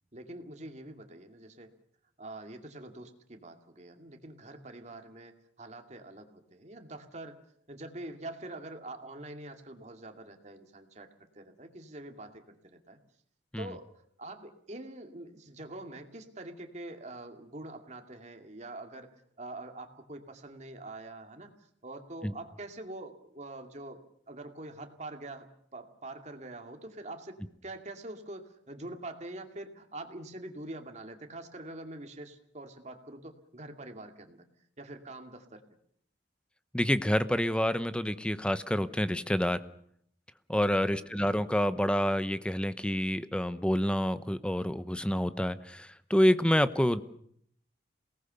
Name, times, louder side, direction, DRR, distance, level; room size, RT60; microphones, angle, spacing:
voice 1, 0.1-1.7 2.2-7.4 7.7-11.1 11.3-13.0 13.6-24.0 24.3-34.4 34.8-35.6 40.8-41.2, right 2 dB, 40° right, 5 dB, 2.4 m, -45 dB
voice 2, 36.7-39.6 40.5-47.0, equal, 5° left, 13 dB, 0.9 m, -28 dB
27.5 x 19.0 x 6.9 m, 0.68 s
head